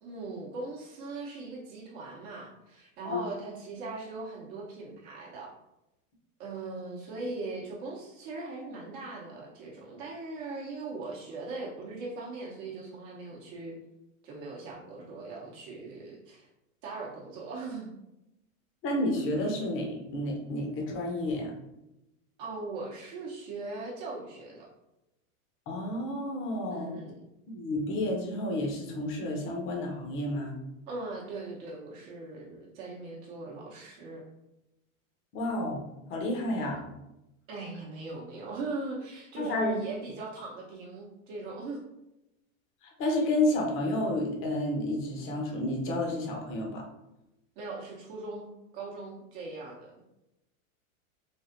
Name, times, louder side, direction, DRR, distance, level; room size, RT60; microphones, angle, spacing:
voice 1, 0.0-5.5 6.4-13.8 14.2-16.5 16.8-17.9 22.4-24.7 26.7-27.2 30.9-34.2 37.5-41.8 47.6-50.0, right 3 dB, 50° right, -3 dB, 0.9 m, -40 dB
voice 2, 18.8-21.5 25.7-27.1 27.5-30.6 35.3-35.8 36.1-36.8 39.4-39.8 43.0-46.8, left 1 dB, 30° left, 0 dB, 0.8 m, -30 dB
3.3 x 2.4 x 2.5 m, 0.90 s
hypercardioid pair, 125°, 42 cm